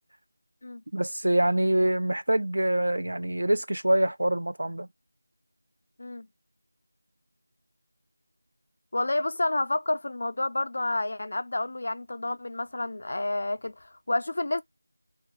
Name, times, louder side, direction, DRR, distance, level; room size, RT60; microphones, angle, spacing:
voice 1, 0.9-4.9, right 1 dB, 75° right, 0.4 m, -25 dB
voice 2, 8.9-14.6, left 2 dB, 45° left, 0.3 m, -29 dB
3.5 x 2.3 x 2.8 m
figure-of-eight pair, 180°, 0 cm